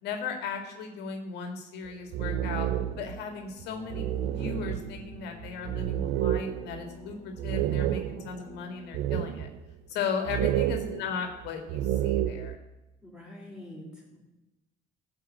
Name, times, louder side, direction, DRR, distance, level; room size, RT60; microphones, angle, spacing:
voice 1, 0.0-2.7 3.0-4.1 4.3-9.5 9.9-12.6, left 6 dB, 80° left, 5 dB, 2.1 m, -36 dB
sound 1, 1.9-3.2 3.6-3.7 3.9-8.4 8.9-9.7 10.3-12.6, right 12 dB, 90° right, 0.6 m, -30 dB
sound 2, 2.8-9.0, left 5 dB, 20° left, 1.6 m, -49 dB
voice 2, 10.0-10.4 13.0-14.2, left 1 dB, 5° right, -3 dB, 4.8 m, -45 dB
15.5 x 5.5 x 8.0 m, 0.99 s
cardioid pair, 110°, 17 cm